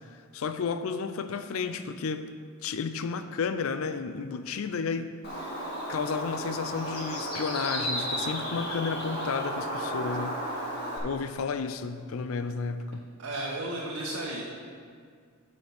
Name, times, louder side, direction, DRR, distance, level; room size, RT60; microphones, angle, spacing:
voice 1, 0.3-2.3 2.6-10.4 10.6-13.1, left 5 dB, 70° left, 10 dB, 0.4 m, -32 dB
Bird, 5.2-11.0, equal, 50° left, 1.6 m, -33 dB
voice 2, 13.2-14.6, right 1 dB, 80° right, -4 dB, 1.0 m, -34 dB
6.3 x 5.4 x 6.9 m, 2.1 s
head